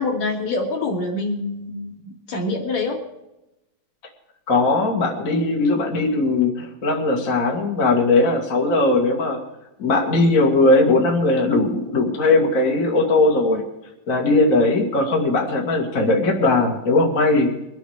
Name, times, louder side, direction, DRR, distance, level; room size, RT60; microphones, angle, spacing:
voice 1, 0.0-3.0, left 3 dB, 50° left, -1 dB, 3.6 m, -25 dB
voice 2, 4.5-9.4 9.8-13.6 14.1-17.5, left 2 dB, 30° left, -1 dB, 1.8 m, -19 dB
23.5 x 8.2 x 5.0 m, 0.94 s
omnidirectional pair, 4.2 m